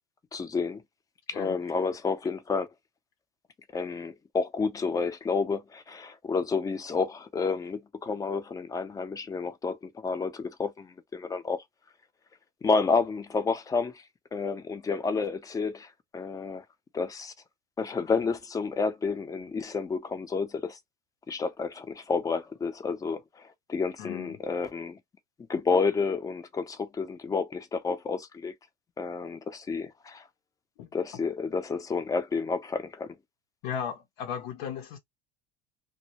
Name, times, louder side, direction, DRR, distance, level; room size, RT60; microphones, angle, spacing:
voice 1, 0.3-0.8 1.3-2.7 3.7-11.6 12.6-14.0 14.3-16.6 16.9-17.3 17.8-20.8 21.3-25.0 25.5-28.5 29.0-30.2 30.9-33.1, left 4 dB, 20° left, 0.5 m, -30 dB
voice 2, 24.0-24.4 30.8-30.9 33.6-35.0, left 8 dB, 70° left, 0.6 m, -36 dB
2.1 x 2.1 x 2.9 m
supercardioid pair, 115°, 18 cm